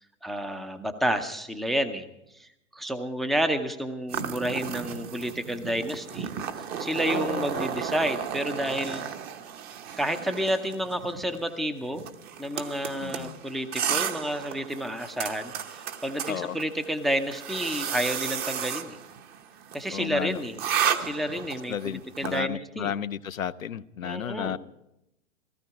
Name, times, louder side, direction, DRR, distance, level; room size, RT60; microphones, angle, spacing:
voice 1, 0.2-2.1 2.3-6.3 6.8-9.1 10.0-12.1 12.4-19.0 19.7-20.6 21.0-22.9 24.0-24.6, equal, ahead, 9 dB, 0.6 m, -30 dB
sound 1, 4.1-22.4, right 8 dB, 25° right, 0.9 m, -34 dB
voice 2, 7.1-7.6 13.0-13.4 16.3-16.6 19.9-20.4 21.7-24.6, left 9 dB, 85° left, 15 dB, 0.7 m, -33 dB
16.5 x 14.5 x 4.7 m, 0.83 s
hypercardioid pair, 115°, 40 cm